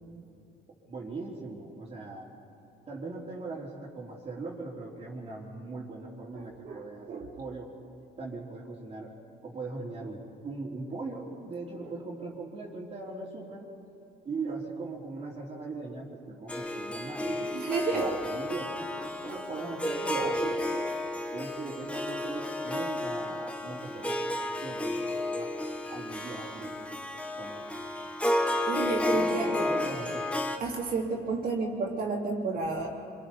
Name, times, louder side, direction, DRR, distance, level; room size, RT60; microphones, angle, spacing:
voice 1, 0.9-2.3 2.9-7.7 8.2-9.1 9.4-13.7 14.2-17.6 17.9-20.6 21.3-25.5 25.9-26.7 27.4-27.6 29.1-30.3, right 3 dB, 35° right, -8 dB, 3.4 m, -39 dB
voice 2, 6.3-7.3 11.8-11.9 17.5-18.2 20.1-20.4 28.6-29.5 30.6-32.9, right 4 dB, 60° right, -2 dB, 3.3 m, -31 dB
Harp, 16.5-30.6, left 1 dB, 5° left, 1.3 m, -32 dB
25.5 x 25.0 x 4.3 m, 2.5 s
cardioid pair, 110°, 17 cm